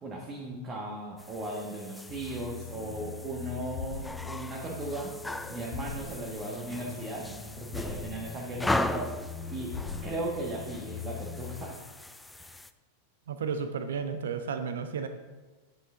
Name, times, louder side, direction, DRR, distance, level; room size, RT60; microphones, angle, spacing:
voice 1, 0.0-5.1 5.5-9.7 10.0-11.8 12.4-12.5, right 1 dB, 25° right, -2 dB, 1.3 m, -37 dB
sound 1, 1.2-12.7, left 1 dB, 5° left, 0.4 m, -38 dB
sound 2, 2.1-11.7, left 5 dB, 45° left, 1.9 m, -41 dB
voice 2, 13.3-15.1, right 6 dB, 65° right, 8 dB, 0.5 m, -33 dB
9.4 x 5.8 x 3.8 m, 1.3 s
figure-of-eight pair, 90°, 0 cm